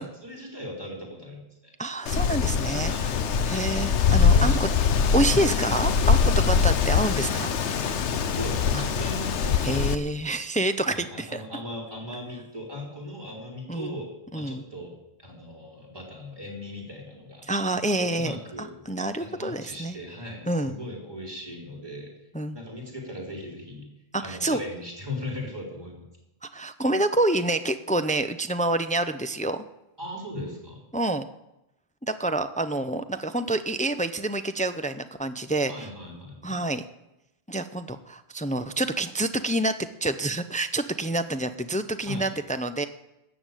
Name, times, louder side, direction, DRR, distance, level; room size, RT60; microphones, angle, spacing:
voice 1, 0.2-1.7 2.8-3.1 4.3-4.8 8.4-9.6 10.8-14.1 14.3-17.5 18.0-18.7 19.2-22.1 22.5-23.9 24.2-26.0 30.0-30.8 35.7-36.6 42.0-42.3, left 1 dB, 20° right, 0 dB, 3.9 m, -38 dB
voice 2, 1.8-2.9 3.5-4.7 5.1-8.0 9.6-11.4 13.7-14.0 14.3-14.6 17.5-20.0 20.5-20.7 22.3-22.6 24.1-24.6 26.4-29.6 30.9-31.2 32.0-35.9 36.4-36.8 37.5-39.8 40.0-42.9, right 2 dB, 10° left, 9 dB, 0.4 m, -27 dB
Wind, 2.1-9.9, left 6 dB, 90° left, 1.1 m, -23 dB
13.5 x 7.1 x 9.1 m, 0.91 s
omnidirectional pair, 1.1 m